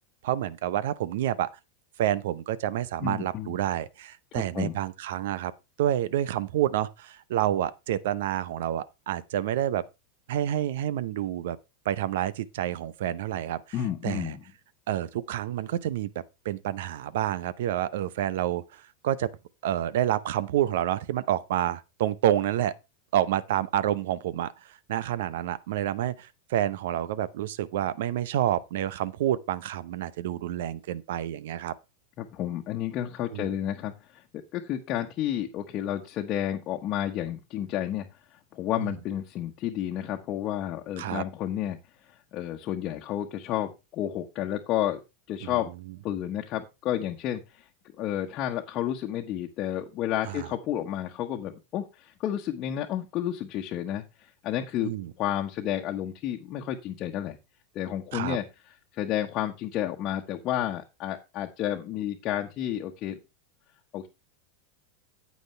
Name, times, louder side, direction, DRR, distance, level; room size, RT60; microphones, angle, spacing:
voice 1, 0.2-1.5 2.0-5.5 5.8-9.8 10.3-11.6 11.8-13.6 14.0-14.3 14.9-19.3 19.6-22.7 23.1-24.5 24.9-31.7 33.3-33.5 38.8-38.9 41.0-41.2 45.4-45.5 50.3-50.5 54.8-55.1 58.1-58.4, right 12 dB, 70° right, 0.7 m, -28 dB
voice 2, 3.0-3.5 4.3-4.8 13.7-14.4 32.2-34.2 34.5-38.1 38.3-41.8 42.1-45.0 45.3-45.7 46.0-47.7 48.0-54.9 55.2-57.4 57.7-58.4 58.9-63.2 63.9-64.1, left 11 dB, 45° left, 1.2 m, -31 dB
9.2 x 8.6 x 3.3 m
hypercardioid pair, 100°, 0 cm